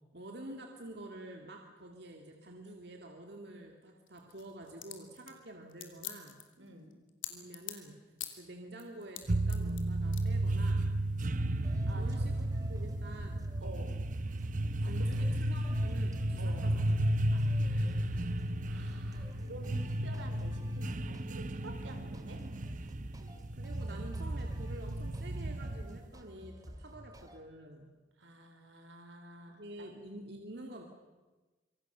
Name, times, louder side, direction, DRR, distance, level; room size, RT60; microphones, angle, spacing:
voice 1, 0.1-6.4 7.3-8.0 8.4-10.9 11.8-13.5 13.8-14.1 14.8-17.4 23.2-27.9 29.5-30.8, right 1 dB, 55° right, 2 dB, 2.2 m, -48 dB
sound 1, 4.1-7.9 8.2-8.4 8.8-9.8 10.1-10.2, left 13 dB, 90° left, 3.1 m, -43 dB
voice 2, 6.6-6.9 11.9-12.3 13.6-13.9 14.8-15.2 16.4-16.7 17.5-18.4 18.6-22.4 28.2-29.9, right 1 dB, 85° right, 5 dB, 4.9 m, -50 dB
sound 2, 9.3-26.1, right 1 dB, 40° right, 0.7 m, -33 dB
sound 3, 11.6-27.4, equal, 20° right, 2.2 m, -51 dB
26.0 x 24.5 x 6.8 m, 1.2 s
head